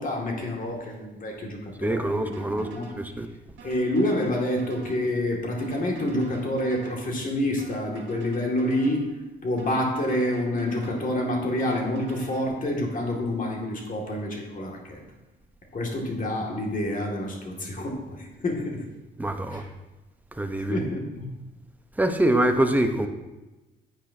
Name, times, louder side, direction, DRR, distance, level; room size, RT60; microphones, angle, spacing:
voice 1, 0.0-2.9 3.6-9.1 9.4-15.0 15.7-18.8 19.5-19.7 20.6-21.3, left 1 dB, 40° left, 0 dB, 2.1 m, -28 dB
voice 2, 1.8-2.7 3.0-3.3 19.2-19.6 20.4-20.8 22.0-23.1, right 1 dB, 10° right, 6 dB, 0.9 m, -24 dB
sound 1, 2.3-3.0 3.6-5.0 5.6-7.0 7.6-9.0 9.6-11.0 11.6-12.5, right 3 dB, 65° right, 2.1 m, -44 dB
9.8 x 8.6 x 2.7 m, 1.1 s
cardioid pair, 90°, 20 cm